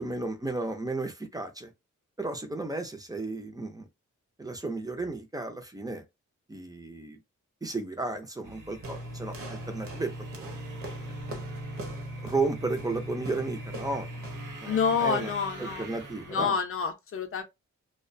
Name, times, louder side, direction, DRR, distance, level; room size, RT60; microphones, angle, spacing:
voice 1, 0.0-1.7 2.2-3.9 4.4-6.0 6.5-7.2 7.6-10.1 10.4-10.6 12.2-14.2 14.6-15.3 15.6-16.6, right 3 dB, 15° right, 0.4 m, -33 dB
sound 1, 8.4-16.5, right 3 dB, 90° right, 0.9 m, -44 dB
sound 2, 8.8-14.6, equal, 45° right, 0.7 m, -39 dB
voice 2, 14.6-15.8 16.3-17.4, left 6 dB, 45° left, 0.5 m, -28 dB
2.3 x 2.1 x 2.6 m
wide cardioid pair, 145°, 30 cm